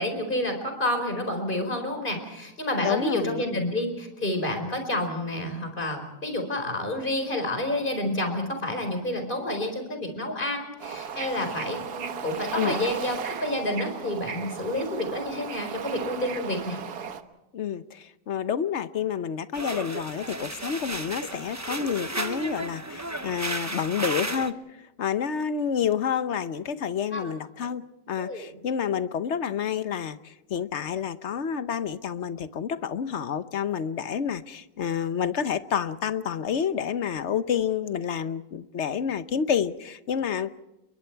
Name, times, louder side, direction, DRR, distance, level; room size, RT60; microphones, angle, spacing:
voice 1, 0.0-16.8 27.1-27.3 28.2-28.4, left 1 dB, 30° left, 5 dB, 4.7 m, -29 dB
voice 2, 2.8-3.6 12.5-12.8 17.5-27.8 28.1-40.5, left 7 dB, 50° left, 13 dB, 1.0 m, -29 dB
Bird / Ocean, 10.8-17.2, right 7 dB, 65° right, 1.7 m, -36 dB
sound 1, 19.5-24.5, right 2 dB, 15° right, 0.6 m, -33 dB
29.5 x 23.0 x 4.6 m, 0.96 s
omnidirectional pair, 1.8 m